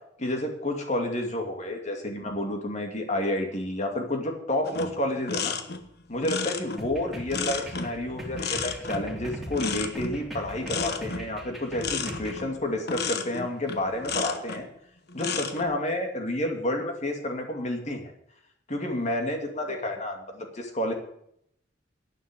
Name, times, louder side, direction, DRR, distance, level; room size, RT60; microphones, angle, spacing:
voice 1, 0.2-5.6 6.1-14.7 15.1-18.0 18.7-20.9, left 1 dB, 40° left, 3 dB, 2.6 m, -30 dB
sound 1, 4.6-14.7 15.1-15.6, left 5 dB, 60° left, 1.3 m, -33 dB
sound 2, 6.8-12.4, equal, ahead, 3.3 m, -40 dB
11.5 x 9.4 x 8.2 m, 0.72 s
head